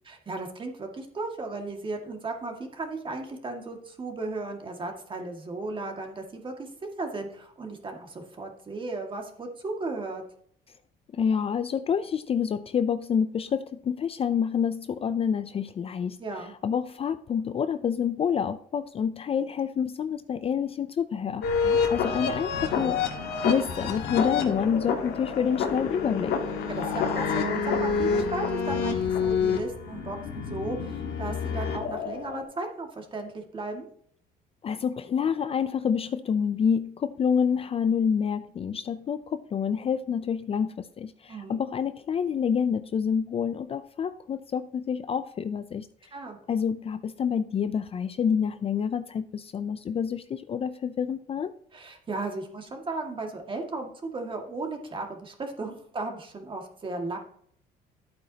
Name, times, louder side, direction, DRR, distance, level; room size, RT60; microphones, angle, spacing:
voice 1, 0.1-6.7 7.0-10.2 16.2-16.5 21.6-21.8 26.7-33.9 41.3-41.6 46.1-46.4 51.7-57.2, right 3 dB, 30° right, 3 dB, 2.0 m, -35 dB
voice 2, 11.1-23.0 23.4-26.4 34.6-45.9 46.5-51.5, left 7 dB, 35° left, 12 dB, 0.4 m, -28 dB
sound 1, 21.4-32.4, left 5 dB, 80° left, 1.6 m, -28 dB
11.0 x 8.7 x 2.8 m, 0.63 s
cardioid pair, 110°, 17 cm